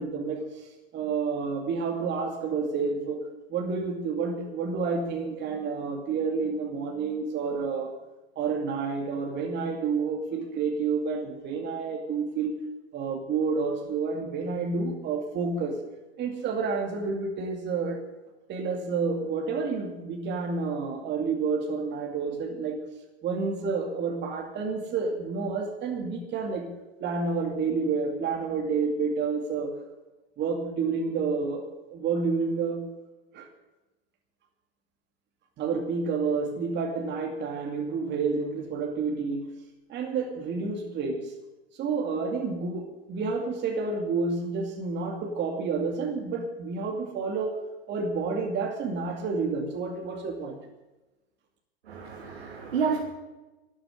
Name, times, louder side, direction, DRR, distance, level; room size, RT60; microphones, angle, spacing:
voice 1, 0.0-3.2 3.5-8.0 8.4-12.5 12.9-15.8 16.2-18.0 18.5-22.8 23.2-26.7 27.0-29.8 30.4-32.8 33.3-33.5 35.6-39.5 39.9-41.3 41.7-47.6 47.9-50.6, right 4 dB, 35° right, 2 dB, 2.4 m, -29 dB
voice 2, 51.9-53.0, right 6 dB, 75° right, -2 dB, 3.1 m, -29 dB
12.5 x 8.8 x 9.8 m, 1.1 s
hypercardioid pair, 95°, 32 cm